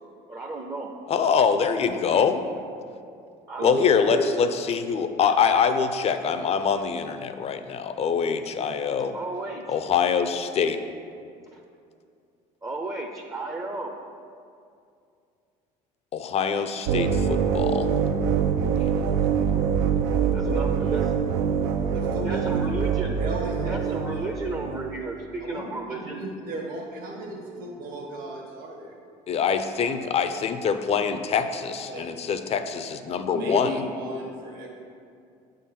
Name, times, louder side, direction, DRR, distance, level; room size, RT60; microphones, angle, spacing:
voice 1, 0.3-0.9 3.5-3.7 4.9-5.1 9.1-9.8 11.5-11.6 12.6-13.9 20.3-21.1 22.2-23.2 23.7-26.2, right 2 dB, 20° right, 2 dB, 0.5 m, -34 dB
voice 2, 1.1-2.4 3.6-9.1 9.7-10.8 16.1-17.9 18.8-18.9 29.3-33.7, left 6 dB, 40° left, 9 dB, 0.4 m, -24 dB
voice 3, 1.8-2.2 3.6-4.3 21.9-22.7 23.2-24.6 24.9-25.0 25.4-29.0 31.9-32.1 33.3-34.7, right 1 dB, 70° right, 0 dB, 1.3 m, -34 dB
sound 1, 16.8-24.9, right 7 dB, 90° right, 0.4 m, -24 dB
7.8 x 3.8 x 4.3 m, 2.4 s
supercardioid pair, 95°, 16 cm